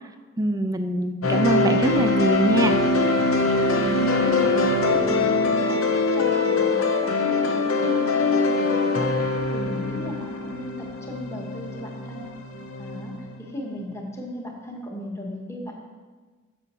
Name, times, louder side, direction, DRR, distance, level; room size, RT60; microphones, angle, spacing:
voice 1, 0.4-2.8, right 1 dB, 15° right, 8 dB, 0.3 m, -23 dB
sound 1, 1.2-13.3, left 3 dB, 90° left, 0.7 m, -23 dB
voice 2, 3.7-5.8 6.1-9.1 9.5-12.3 12.8-15.9, equal, 15° left, 0 dB, 0.9 m, -36 dB
6.9 x 6.2 x 4.1 m, 1.4 s
head